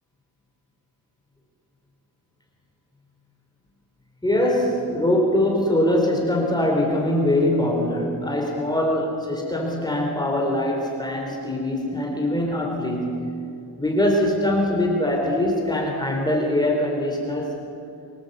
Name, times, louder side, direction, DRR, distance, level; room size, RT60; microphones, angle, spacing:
voice 1, 4.2-13.3 13.8-17.5, left 1 dB, 10° left, 0 dB, 3.7 m, -22 dB
25.5 x 25.0 x 8.0 m, 2.5 s
wide cardioid pair, 175°, 37 cm